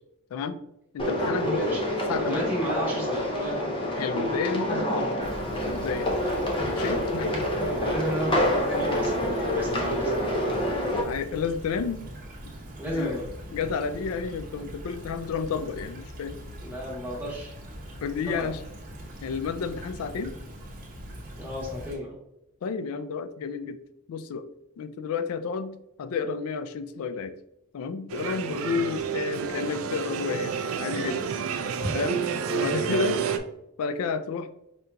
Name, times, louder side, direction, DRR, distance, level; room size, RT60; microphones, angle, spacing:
voice 1, 0.9-1.8 2.1-2.5 4.0-5.2 5.7-6.1 6.7-7.3 11.0-12.0 12.4-12.5 12.9-13.2 13.5-16.4 18.0-18.6 19.2-20.4 22.6-23.8 24.1-24.4 24.8-27.3 27.7-31.2 31.9-33.2 33.8-34.5, left 5 dB, 70° left, 12 dB, 0.3 m, -31 dB
sound 1, 1.0-11.0, equal, 25° left, 0.5 m, -27 dB
voice 2, 1.4-1.8 2.1-3.9 7.2-10.4 12.8-13.2 16.6-17.5 18.4-18.5 21.4-22.2 31.8-32.0 32.6-32.9, equal, 10° right, -4 dB, 1.1 m, -33 dB
Stream / Trickle dribble, 5.2-21.9, equal, 40° right, 0.8 m, -41 dB
sound 2, 28.1-33.4, right 7 dB, 65° right, 0.4 m, -30 dB
5.0 x 2.8 x 2.2 m, 0.81 s
head